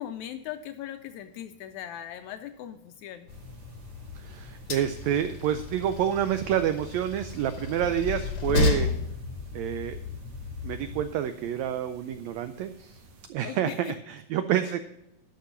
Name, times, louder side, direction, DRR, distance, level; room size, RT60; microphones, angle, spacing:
voice 1, 0.0-3.3 13.4-13.9 14.6-14.7, left 11 dB, 80° left, 8 dB, 1.7 m, -39 dB
Train, 3.3-11.0, left 4 dB, 65° left, 1.5 m, -32 dB
sound 1, 3.3-13.3, right 1 dB, 60° right, 2.0 m, -53 dB
voice 2, 4.1-8.9 9.5-10.0 10.6-13.0 13.3-14.8, right 10 dB, 90° right, 9 dB, 1.5 m, -28 dB
11.5 x 6.0 x 5.7 m, 0.85 s
omnidirectional pair, 3.7 m